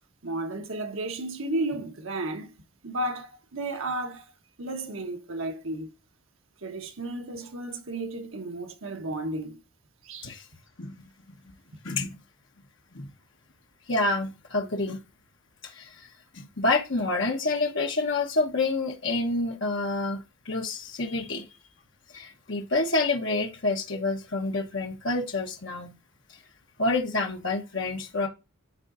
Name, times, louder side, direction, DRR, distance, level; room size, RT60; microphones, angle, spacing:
voice 1, 0.2-2.6 2.8-4.2 4.6-5.9 6.6-9.6 10.0-10.3, right 2 dB, 70° right, 1.1 m, -33 dB
voice 2, 11.8-12.2 12.9-13.1 13.9-15.0 15.6-16.1 16.3-21.5 22.1-25.9 26.8-28.3, left 2 dB, 55° left, 1.1 m, -28 dB
10.5 x 3.8 x 2.5 m
head